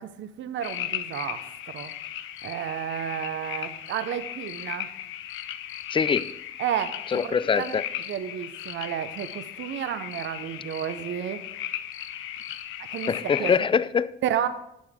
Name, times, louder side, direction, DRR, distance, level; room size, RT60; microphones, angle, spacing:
voice 1, 0.0-1.9 2.4-4.9 6.6-11.4 12.9-13.5 14.2-14.5, right 10 dB, 70° right, 0.8 m, -32 dB
sound 1, 0.6-13.6, left 11 dB, 85° left, 0.7 m, -36 dB
voice 2, 5.9-6.3 7.1-7.8 13.1-14.1, left 6 dB, 25° left, 0.4 m, -23 dB
11.5 x 8.9 x 3.6 m
cardioid pair, 90°, 20 cm